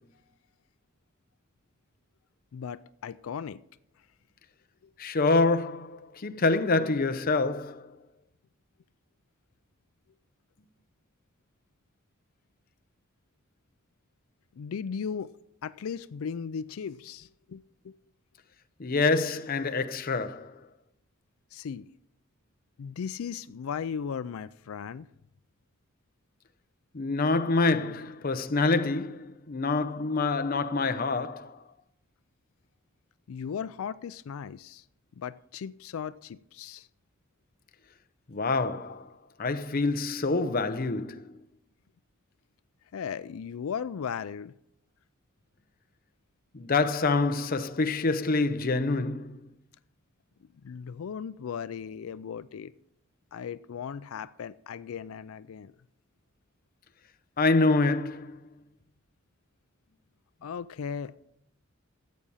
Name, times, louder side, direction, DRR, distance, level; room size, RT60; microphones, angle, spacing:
voice 1, 2.5-3.6 14.6-15.3 15.6-17.9 21.5-21.9 22.8-25.1 33.3-34.8 35.2-36.9 42.9-44.5 50.6-52.7 53.3-55.7 60.4-61.2, left 7 dB, 90° left, 0.4 m, -37 dB
voice 2, 5.0-7.9 18.8-20.6 26.9-31.6 38.3-39.1 39.4-41.3 46.5-49.4 57.4-58.4, left 3 dB, 45° left, 0.7 m, -26 dB
13.5 x 8.6 x 5.5 m
head